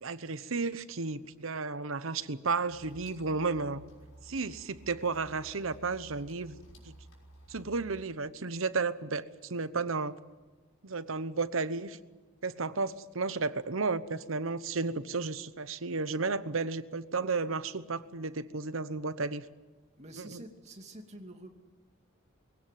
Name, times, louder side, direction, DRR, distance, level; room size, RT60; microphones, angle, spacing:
voice 1, 0.0-3.8 4.2-6.5 6.9-7.0 7.5-10.2 10.8-12.0 12.4-19.4 20.2-20.4, right 4 dB, 75° right, 14 dB, 1.0 m, -33 dB
sound 1, 2.7-8.0, right 1 dB, 90° left, 5.9 m, -54 dB
voice 2, 20.0-21.5, right 1 dB, 35° right, 3 dB, 2.8 m, -47 dB
22.5 x 17.0 x 9.3 m, 1.3 s
head